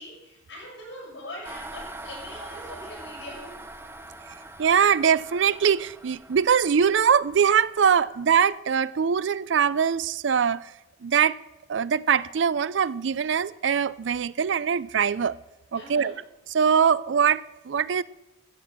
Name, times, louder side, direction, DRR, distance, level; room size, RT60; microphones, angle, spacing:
voice 1, 0.0-3.6 15.8-16.2, left 1 dB, 70° left, -2 dB, 6.0 m, -42 dB
sound 1, 1.4-8.5, right 2 dB, 10° right, 0.6 m, -43 dB
voice 2, 4.6-10.7 11.0-11.4 11.7-15.4 15.7-16.1 16.5-18.0, right 7 dB, 70° right, 19 dB, 0.4 m, -22 dB
14.0 x 7.8 x 7.2 m, 0.96 s
head